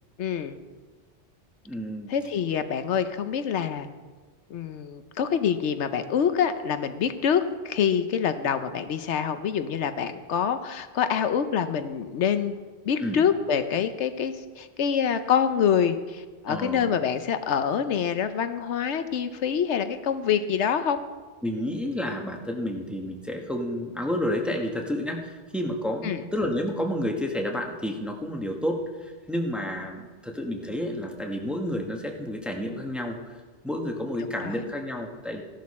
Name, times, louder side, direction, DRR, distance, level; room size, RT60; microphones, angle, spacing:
voice 1, 0.2-0.6 2.1-3.9 4.5-12.6 12.8-21.0 26.0-26.2 34.4-34.6, left 7 dB, 80° left, 10 dB, 1.0 m, -26 dB
voice 2, 1.6-2.1 13.0-13.2 16.5-16.9 21.4-33.2 33.6-35.4, left 1 dB, ahead, 2 dB, 1.2 m, -30 dB
15.0 x 11.5 x 4.2 m, 1.4 s
omnidirectional pair, 1.2 m